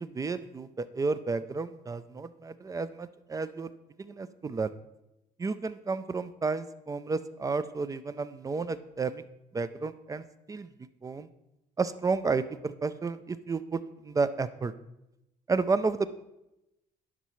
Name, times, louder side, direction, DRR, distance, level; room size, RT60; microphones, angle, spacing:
voice 1, 0.0-3.7 4.0-4.7 5.4-9.2 9.5-10.7 11.0-11.3 11.8-14.7 15.5-16.1, right 4 dB, 20° right, 13 dB, 0.3 m, -31 dB
11.0 x 5.6 x 3.1 m, 0.90 s
cardioid pair, 110°, 17 cm